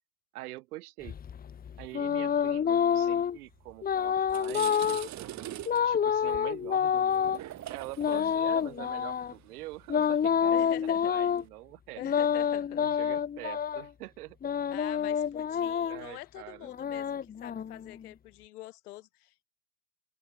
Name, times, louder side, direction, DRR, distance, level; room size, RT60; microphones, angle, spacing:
voice 1, 0.3-1.2 1.8-7.4 7.7-12.0 12.8-14.4 15.0-15.1 15.9-16.7, right 18 dB, 85° right, 2.6 m, -45 dB
sound 1, 1.0-3.4 3.8-5.1 5.7-7.4 8.0-9.3 9.9-11.4 12.0-13.9 14.4-16.0 16.6-18.0, left 8 dB, 20° left, 1.1 m, -28 dB
sound 2, 3.7-3.8 4.2-11.5, right 13 dB, 40° right, 3.5 m, -44 dB
voice 2, 10.5-11.2 12.0-12.8 14.7-19.4, left 16 dB, 90° left, 2.9 m, -45 dB
supercardioid pair, 125°, 44 cm